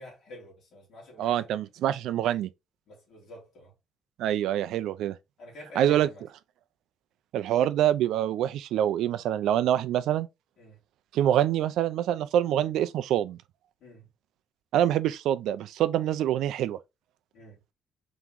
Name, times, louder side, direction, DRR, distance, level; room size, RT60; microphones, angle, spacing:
voice 1, 0.0-1.6 2.9-3.7 5.4-6.2 10.6-10.8 13.8-14.1 17.3-17.6, left 1 dB, 60° left, 2.0 m, -47 dB
voice 2, 1.2-2.5 4.2-5.2 5.8-6.1 7.3-10.3 11.1-13.4 14.7-16.8, right 11 dB, 80° right, 0.4 m, -25 dB
3.6 x 3.0 x 3.5 m
cardioid pair, 160°, 0 cm